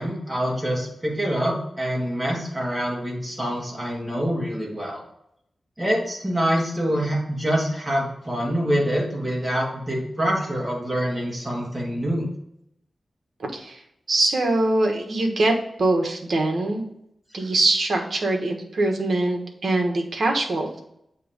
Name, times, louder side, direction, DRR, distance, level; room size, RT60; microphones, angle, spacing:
voice 1, 0.0-5.0 5.8-12.3, equal, 15° right, -3 dB, 2.2 m, -25 dB
voice 2, 13.4-13.8 14.1-16.8 17.3-20.8, right 2 dB, 65° right, 2 dB, 1.3 m, -23 dB
7.7 x 3.1 x 5.1 m, 0.77 s
wide cardioid pair, 130°, 0 cm